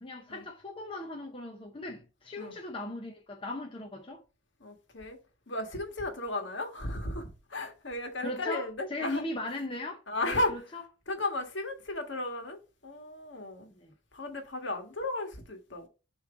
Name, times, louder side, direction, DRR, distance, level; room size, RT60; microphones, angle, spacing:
voice 1, 0.0-4.2 8.2-10.8 13.8-13.9, left 2 dB, 25° left, 0.7 m, -38 dB
voice 2, 4.6-5.2 5.5-9.2 10.1-10.5 11.1-12.6 12.8-13.7 14.1-15.9, left 2 dB, 60° left, 1.5 m, -34 dB
6.9 x 3.1 x 4.8 m
head